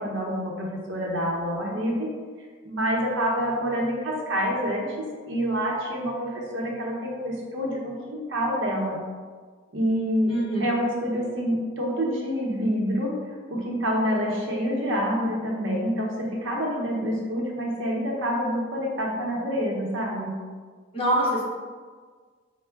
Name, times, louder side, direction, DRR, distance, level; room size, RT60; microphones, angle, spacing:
voice 1, 0.0-2.1 2.6-9.0 9.7-10.3 10.6-13.1 13.5-20.3, equal, 70° right, -2 dB, 0.8 m, -27 dB
voice 2, 10.3-10.6 20.9-21.4, right 1 dB, 25° left, -5 dB, 0.7 m, -23 dB
4.4 x 2.1 x 3.4 m, 1.6 s
head